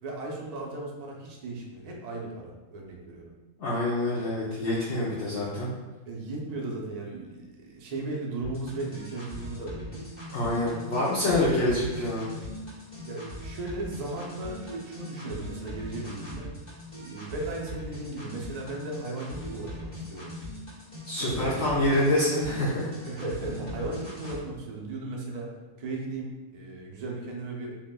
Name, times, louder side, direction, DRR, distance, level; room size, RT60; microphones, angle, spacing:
voice 1, 0.0-3.3 6.0-10.0 13.0-16.5 17.0-20.3 21.2-21.7 23.1-25.5 25.8-27.8, right 2 dB, 45° right, -2 dB, 0.5 m, -36 dB
voice 2, 3.6-5.7 10.3-12.3 21.1-22.9, left 1 dB, 55° left, -7 dB, 1.1 m, -26 dB
sound 1, 8.4-24.4, left 1 dB, 30° left, 1.4 m, -41 dB
7.3 x 2.6 x 2.2 m, 1.2 s
omnidirectional pair, 1.5 m